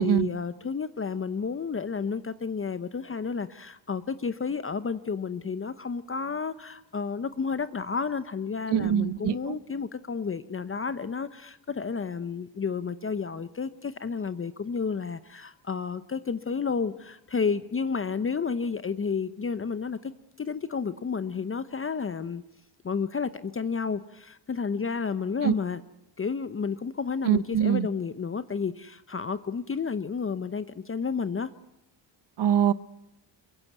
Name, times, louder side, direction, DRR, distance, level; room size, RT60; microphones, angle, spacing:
voice 1, 0.0-20.1 20.4-22.4 22.8-25.8 26.2-31.5, left 5 dB, 30° left, 0.8 m, -31 dB
voice 2, 8.7-9.6 25.4-25.5 27.2-27.9 32.4-32.7, right 10 dB, 65° right, 1.0 m, -23 dB
23.0 x 22.5 x 8.1 m
cardioid pair, 105°, 45 cm